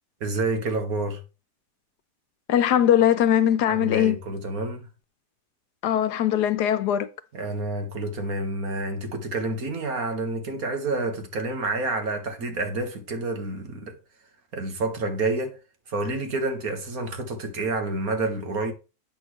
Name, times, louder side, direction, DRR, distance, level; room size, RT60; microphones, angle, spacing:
voice 1, 0.2-1.2 3.7-4.9 7.3-14.0 14.5-15.6 15.9-18.7, right 2 dB, 65° right, 2.0 m, -29 dB
voice 2, 2.5-4.2 5.8-7.1, left 10 dB, 90° left, 1.4 m, -20 dB
8.8 x 6.4 x 3.1 m
omnidirectional pair, 1.7 m